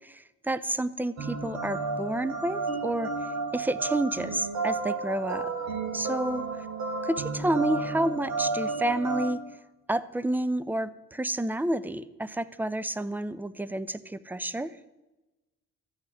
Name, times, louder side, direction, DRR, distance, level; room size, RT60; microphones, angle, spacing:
voice 1, 0.1-5.5 5.9-6.4 7.0-9.4 9.9-14.8, right 1 dB, 5° right, 15 dB, 0.7 m, -30 dB
sound 1, 1.2-9.3, right 3 dB, 65° right, 3.5 m, -32 dB
14.0 x 6.2 x 9.8 m, 1.0 s
cardioid pair, 90°, 30 cm